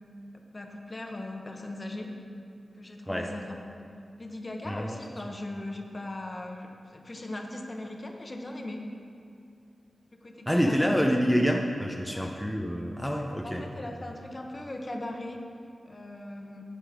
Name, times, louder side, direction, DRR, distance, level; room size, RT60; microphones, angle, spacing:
voice 1, 0.3-2.2 2.8-3.6 4.2-8.8 10.2-11.3 12.1-12.3 13.4-15.4 15.8-16.6, left 1 dB, 35° left, 2 dB, 1.1 m, -39 dB
voice 2, 4.6-5.0 10.5-13.6, equal, 5° left, 0 dB, 0.8 m, -27 dB
11.0 x 8.5 x 5.1 m, 2.5 s
wide cardioid pair, 75°, 0 cm